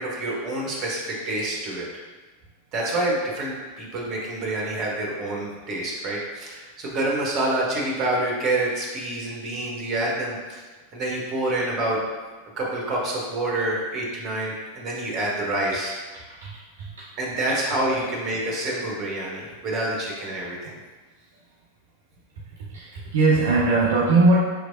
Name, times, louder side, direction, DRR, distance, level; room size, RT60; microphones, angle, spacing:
voice 1, 0.0-1.9 2.7-10.6 10.9-12.0 12.6-15.9 17.2-20.8, right 1 dB, 35° right, -3 dB, 1.0 m, -27 dB
voice 2, 22.7-24.4, right 3 dB, 60° right, -5 dB, 0.6 m, -20 dB
4.9 x 3.1 x 2.6 m, 1.3 s
figure-of-eight pair, 90°, 0 cm